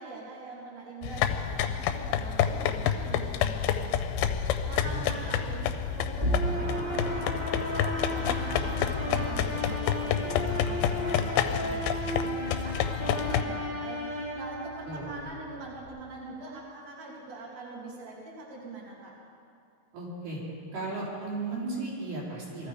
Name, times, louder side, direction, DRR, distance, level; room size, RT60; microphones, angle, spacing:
voice 1, 0.0-5.7 5.9-19.1, right 2 dB, 45° right, -5 dB, 3.6 m, -43 dB
sound 1, 1.0-13.4, left 9 dB, 80° left, 2.5 m, -29 dB
sound 2, 1.9-15.9, right 2 dB, 15° left, 3.7 m, -51 dB
voice 2, 4.8-5.3 14.8-15.1 19.9-20.4 20.7-22.7, right 3 dB, 75° right, -6 dB, 5.4 m, -35 dB
sound 3, 6.2-15.2, equal, 20° right, 1.3 m, -34 dB
20.5 x 14.0 x 5.0 m, 2.4 s
omnidirectional pair, 4.4 m